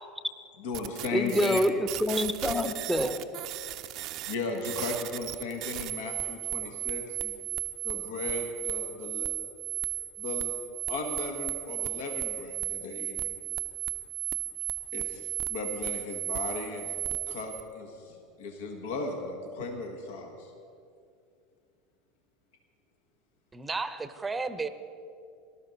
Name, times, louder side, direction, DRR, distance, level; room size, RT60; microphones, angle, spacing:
voice 1, 0.6-1.6 4.3-7.3 7.8-9.3 10.2-10.5 10.9-13.4 14.9-20.5, left 3 dB, 65° left, 3 dB, 1.5 m, -36 dB
sound 1, 0.7-17.6, right 15 dB, 50° right, 0.6 m, -35 dB
voice 2, 1.1-3.2, equal, 5° left, 9 dB, 0.9 m, -27 dB
voice 3, 23.5-24.7, right 3 dB, 15° right, 12 dB, 0.8 m, -33 dB
18.5 x 12.5 x 4.0 m, 2.4 s
figure-of-eight pair, 75°, 0 cm